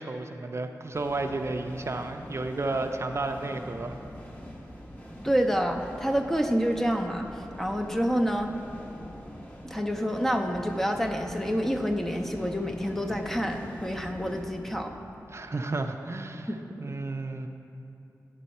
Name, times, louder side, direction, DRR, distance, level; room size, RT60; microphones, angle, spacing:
voice 1, 0.0-4.0 15.3-16.5 16.8-17.5, right 2 dB, 45° right, 5 dB, 0.4 m, -32 dB
sound 1, 0.9-15.7, equal, 25° left, 1.0 m, -44 dB
voice 2, 5.2-8.5 9.6-14.9 16.5-16.6 16.9-17.0, equal, 5° left, 3 dB, 0.6 m, -28 dB
10.0 x 5.4 x 4.2 m, 2.8 s
wide cardioid pair, 65°, 6 cm